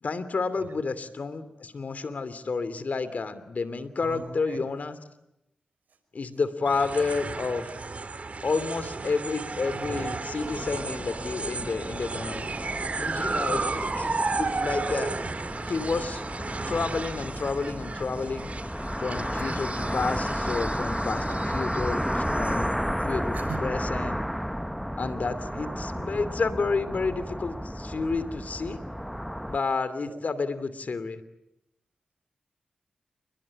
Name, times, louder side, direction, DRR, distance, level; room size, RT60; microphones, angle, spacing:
voice 1, 0.0-5.0 6.1-7.6 8.4-12.5 13.0-15.1 15.7-16.2 16.7-18.5 19.0-24.2 25.0-28.8 29.5-31.2, left 4 dB, 65° left, 14 dB, 2.8 m, -30 dB
voice 2, 4.0-4.6 10.0-10.1 19.7-20.3 21.3-21.6 23.3-23.7 25.5-26.1 30.1-30.2, right 5 dB, 85° right, 9 dB, 5.6 m, -42 dB
sound 1, 6.7-23.1, right 3 dB, 55° right, 2.6 m, -34 dB
sound 2, 10.4-29.6, equal, ahead, 1.0 m, -32 dB
29.5 x 21.0 x 8.7 m, 0.87 s
cardioid pair, 50°, 3 cm